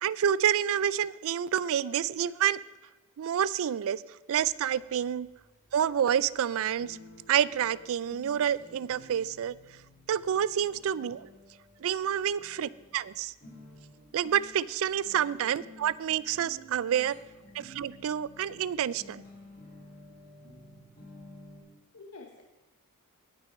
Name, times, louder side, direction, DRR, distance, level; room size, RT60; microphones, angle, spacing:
voice 1, 0.0-2.6 3.2-4.0 4.3-5.3 5.7-7.0 7.3-9.6 10.1-11.3 11.8-13.3 14.1-17.2 17.5-19.2, right 9 dB, 65° right, 20 dB, 0.3 m, -28 dB
sound 1, 4.4-21.6, left 1 dB, 35° left, 4.5 m, -53 dB
voice 2, 21.9-22.4, left 4 dB, 75° left, 3 dB, 0.9 m, -49 dB
17.5 x 6.0 x 5.3 m, 1.1 s
head